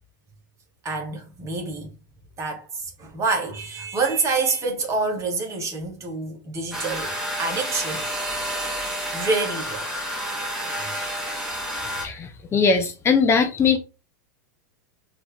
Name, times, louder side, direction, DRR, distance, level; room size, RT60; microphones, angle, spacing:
voice 1, 0.8-1.9 2.4-8.1 9.1-10.0, right 3 dB, 30° right, 1.7 m, -27 dB
sound 1, 6.7-12.0, equal, 5° right, 2.0 m, -29 dB
voice 2, 12.0-13.8, left 5 dB, 25° left, 0.6 m, -20 dB
4.3 x 3.0 x 3.4 m
hypercardioid pair, 100°, 11 cm